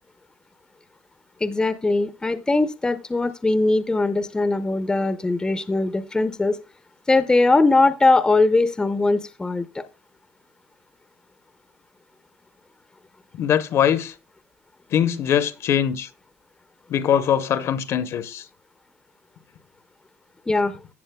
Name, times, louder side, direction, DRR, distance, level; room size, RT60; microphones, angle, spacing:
voice 1, 1.4-6.6 7.1-9.8 20.5-20.8, left 3 dB, 10° left, 0.7 m, -20 dB
voice 2, 13.3-14.1 14.9-16.1 16.9-18.4, left 9 dB, 50° left, 0.9 m, -22 dB
14.5 x 7.1 x 2.2 m
supercardioid pair, 105°, 6 cm